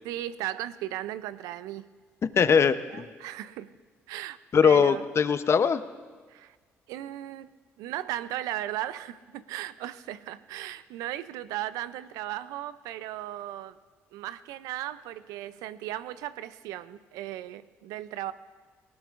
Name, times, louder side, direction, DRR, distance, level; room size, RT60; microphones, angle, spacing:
voice 1, 0.0-1.9 2.9-3.8 4.1-5.0 6.3-6.6 6.9-7.5 7.8-13.8 14.1-18.3, right 13 dB, 80° right, 15 dB, 0.4 m, -36 dB
voice 2, 2.4-3.1 4.5-5.8, left 6 dB, 45° left, 12 dB, 0.7 m, -21 dB
18.5 x 18.5 x 2.5 m, 1.4 s
supercardioid pair, 55°, 6 cm